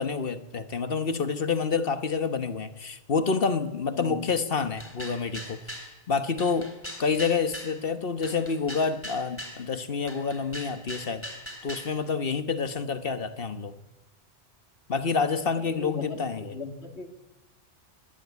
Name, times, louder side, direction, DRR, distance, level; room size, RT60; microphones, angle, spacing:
voice 1, 0.0-5.6 6.1-6.7 7.0-11.2 11.6-13.7 14.9-16.5, left 5 dB, 55° left, 10 dB, 1.4 m, -28 dB
voice 2, 3.9-4.3 15.5-17.1, left 4 dB, 75° left, 5 dB, 2.7 m, -37 dB
sound 1, 4.8-5.9 6.4-7.7 8.2-9.6 10.1-11.9, equal, 10° left, 3.5 m, -40 dB
22.0 x 18.5 x 8.3 m, 1.1 s
omnidirectional pair, 1.1 m